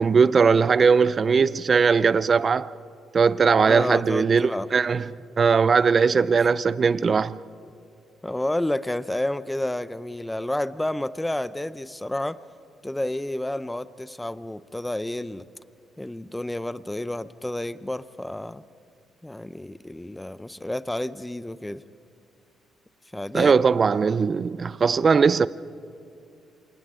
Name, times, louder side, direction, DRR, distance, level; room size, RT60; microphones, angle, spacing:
voice 1, 0.0-2.7 3.1-7.4 23.3-25.5, right 5 dB, 40° right, 0.5 m, -20 dB
voice 2, 3.7-4.7 8.2-12.4 12.8-15.5 16.0-18.6 19.2-21.8 23.1-23.5, left 1 dB, 10° left, 0.7 m, -30 dB
28.0 x 27.5 x 3.8 m
cardioid pair, 90°, 0 cm